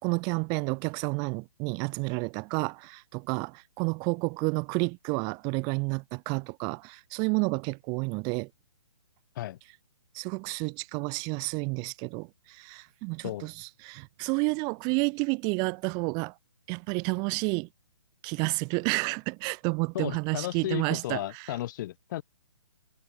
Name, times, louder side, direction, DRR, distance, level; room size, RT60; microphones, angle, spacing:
voice 1, 0.0-8.5 10.1-13.5 13.8-16.3 16.7-17.7 18.2-21.2, right 32 dB, 25° right, 2.7 m, -30 dB
voice 2, 19.9-22.2, left 14 dB, 40° left, 5.6 m, -34 dB
hypercardioid pair, 140°, 16 cm